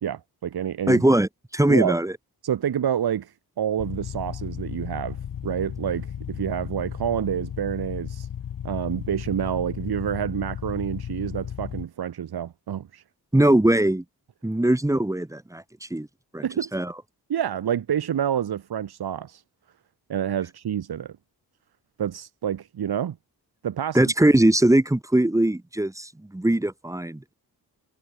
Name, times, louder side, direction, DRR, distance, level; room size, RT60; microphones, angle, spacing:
voice 1, 0.0-1.0 1.7-2.0 2.4-8.3 8.6-13.0 16.4-16.8 17.3-19.4 20.1-21.1 22.0-23.2 23.6-24.1, right 9 dB, 70° right, 1.7 m, -28 dB
voice 2, 0.9-2.1 13.3-14.0 14.4-16.1 16.3-16.4 16.7-16.9 23.9-27.3, right 1 dB, 10° right, 1.1 m, -21 dB
sound 1, 3.8-11.8, left 9 dB, 60° left, 1.2 m, -34 dB
wide cardioid pair, 100°, 39 cm